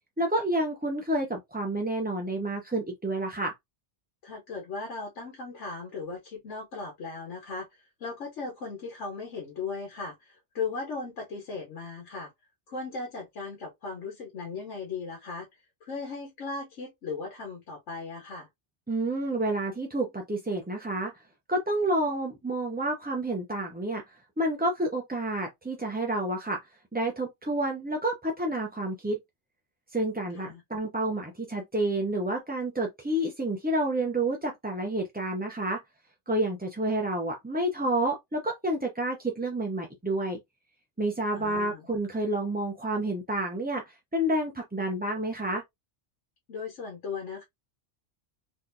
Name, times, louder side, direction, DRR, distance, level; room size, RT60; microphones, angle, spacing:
voice 1, 0.2-3.5 18.9-21.1 21.5-24.0 24.4-26.6 26.9-29.2 29.9-35.8 36.3-40.4 41.0-43.8 44.1-45.6, right 1 dB, 10° right, 0.5 m, -29 dB
voice 2, 4.2-12.3 12.7-15.5 15.8-18.5 30.3-30.6 41.3-41.8 46.5-47.4, left 4 dB, 85° left, 1.4 m, -37 dB
3.9 x 3.1 x 2.6 m
omnidirectional pair, 1.2 m